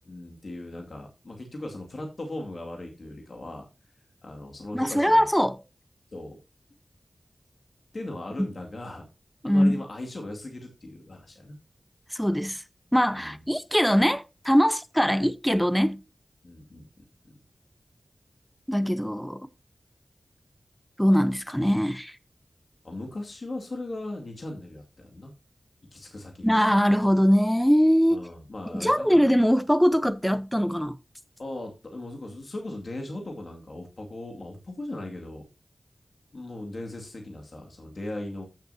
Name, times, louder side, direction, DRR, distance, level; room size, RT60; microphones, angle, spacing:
voice 1, 0.0-3.7 4.2-5.3 6.1-6.4 7.9-9.1 9.4-11.6 13.2-13.4 16.4-16.8 17.2-17.4 22.8-25.3 25.9-26.5 28.1-29.4 31.4-35.5 36.3-38.5, left 1 dB, 60° left, 2.2 m, -38 dB
voice 2, 4.7-5.6 9.4-9.8 12.1-12.6 12.9-16.0 18.7-19.5 21.0-22.2 26.4-28.2 28.7-31.0, equal, ahead, 0.7 m, -22 dB
14.5 x 6.7 x 2.8 m
wide cardioid pair, 65°, 0 cm